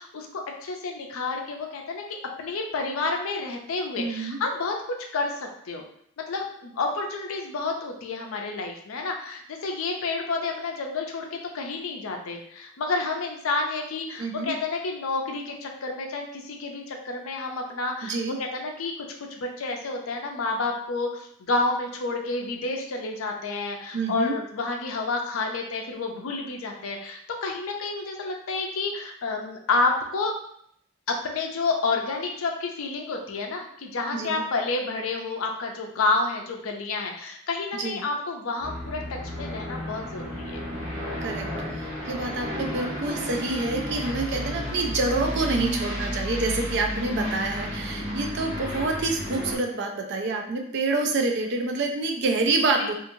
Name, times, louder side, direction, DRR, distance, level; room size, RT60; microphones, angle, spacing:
voice 1, 0.0-5.4 5.7-5.8 6.3-18.9 19.2-30.4 31.1-40.6 46.1-46.2 47.8-48.2 52.8-52.9, left 3 dB, 75° left, 2 dB, 0.5 m, -30 dB
voice 2, 4.0-4.4 14.2-14.5 18.0-18.4 23.9-24.4 34.1-34.4 37.8-38.0 41.2-41.4 41.7-52.9, right 3 dB, 55° right, 2 dB, 0.4 m, -27 dB
Aircraft, 38.6-49.6, equal, 20° right, 1.0 m, -32 dB
2.8 x 2.4 x 2.6 m, 0.68 s
head